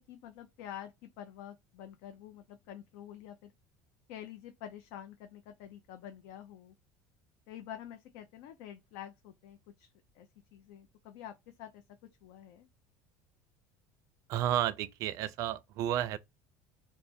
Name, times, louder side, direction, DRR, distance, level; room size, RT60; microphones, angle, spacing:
voice 1, 0.0-3.5 4.1-6.7 7.5-11.8 12.2-12.7, left 10 dB, 75° left, 0.5 m, -48 dB
voice 2, 14.3-16.2, right 12 dB, 55° right, 0.4 m, -32 dB
3.3 x 2.1 x 4.2 m
cardioid pair, 145°, 7 cm